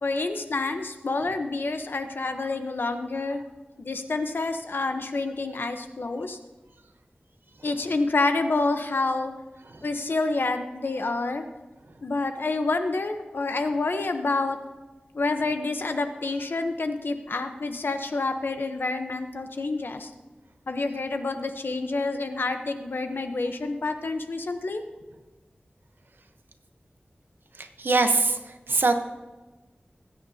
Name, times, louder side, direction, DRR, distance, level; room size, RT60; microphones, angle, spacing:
voice 1, 0.0-3.4 3.8-6.4 7.6-9.3 9.8-11.5 12.0-14.6 15.1-20.1 20.7-24.8, left 3 dB, 80° left, 7 dB, 1.0 m, -28 dB
voice 2, 27.6-28.9, right 3 dB, 80° right, 7 dB, 1.0 m, -24 dB
20.0 x 9.3 x 2.9 m, 1.2 s
wide cardioid pair, 60°, 4 cm